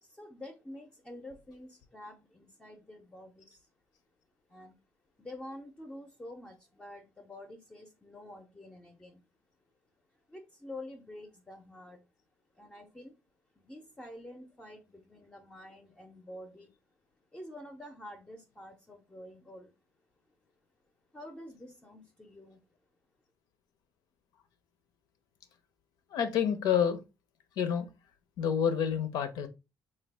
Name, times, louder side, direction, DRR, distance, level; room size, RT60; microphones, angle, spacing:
voice 1, 0.0-3.7 4.5-4.8 5.2-9.3 10.3-12.1 12.5-13.2 13.6-16.8 17.3-19.7 21.1-22.6, left 1 dB, 15° left, 0.5 m, -48 dB
voice 2, 26.1-27.0 27.6-27.9 28.4-29.5, left 8 dB, 80° left, 0.5 m, -28 dB
3.3 x 2.3 x 3.2 m
cardioid pair, 95°, 7 cm